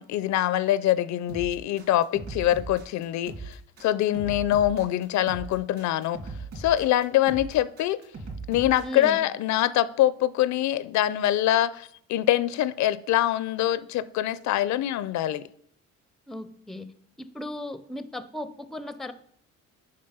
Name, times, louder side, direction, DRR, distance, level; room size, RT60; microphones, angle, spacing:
voice 1, 0.0-6.2 6.6-8.0 8.5-15.5, left 13 dB, 65° left, 0.5 m, -24 dB
sound 1, 1.3-9.0, right 3 dB, 50° right, 2.6 m, -39 dB
voice 2, 8.8-9.3 16.3-16.9 17.2-19.1, left 1 dB, ahead, 0.4 m, -36 dB
6.7 x 5.3 x 5.5 m
cardioid pair, 100°, 30 cm